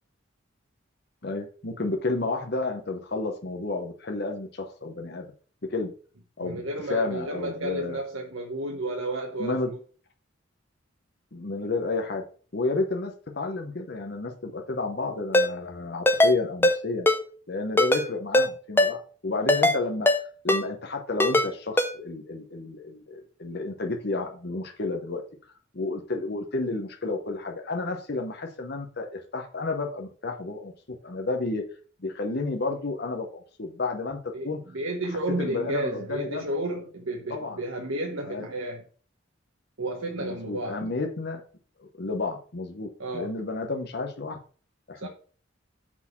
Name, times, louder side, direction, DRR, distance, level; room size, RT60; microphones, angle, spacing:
voice 1, 1.2-5.3 5.7-5.9 6.4-6.6 6.9-8.0 9.4-9.7 11.3-12.2 12.5-17.1 17.5-20.1 20.4-25.2 25.7-30.7 31.0-31.6 32.0-34.2 34.4-34.6 35.4-36.4 37.3-37.6 38.3-38.5 40.2-41.4 41.8-44.4 44.9-45.1, left 3 dB, 55° left, 1.0 m, -31 dB
voice 2, 6.4-9.8 34.3-38.8 39.8-40.9 43.0-43.3 45.0-45.1, right 1 dB, 80° right, 1.1 m, -32 dB
Ringtone, 15.3-15.5 16.1-16.3 16.6-16.8 17.1-17.2 17.8-18.0 18.3-18.5 18.8-18.9 19.5-19.8 20.1-20.2 20.5-20.6 21.2-21.5 21.8-21.9, left 1 dB, 10° left, 0.7 m, -20 dB
6.1 x 4.1 x 5.9 m
head